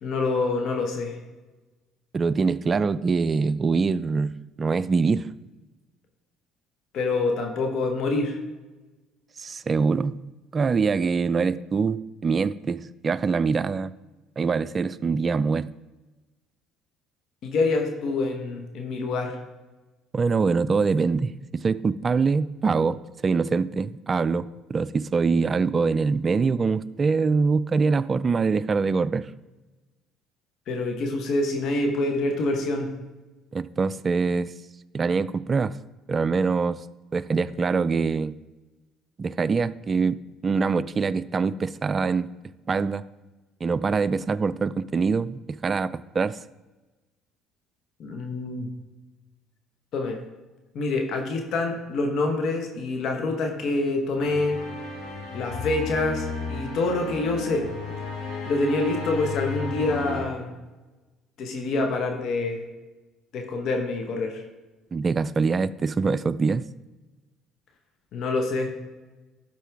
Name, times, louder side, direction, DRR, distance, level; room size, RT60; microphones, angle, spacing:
voice 1, 0.0-1.2 6.9-8.4 17.4-19.4 30.7-32.9 48.0-48.7 49.9-50.2 50.7-54.6 55.3-57.7 58.5-60.5 61.4-62.6 63.3-64.4 68.1-68.7, left 3 dB, 60° left, 3 dB, 1.1 m, -26 dB
voice 2, 2.1-4.3 4.6-5.3 9.4-10.2 10.5-13.9 14.4-15.7 20.1-29.3 33.5-34.5 34.9-35.8 36.1-36.8 37.1-38.4 39.2-42.3 42.7-43.0 43.6-46.4 64.9-66.7, right 4 dB, 35° right, 16 dB, 0.3 m, -24 dB
sound 1, 54.2-60.2, left 3 dB, 80° left, 1.8 m, -34 dB
12.0 x 4.6 x 3.5 m, 1.1 s
hypercardioid pair, 65°, 0 cm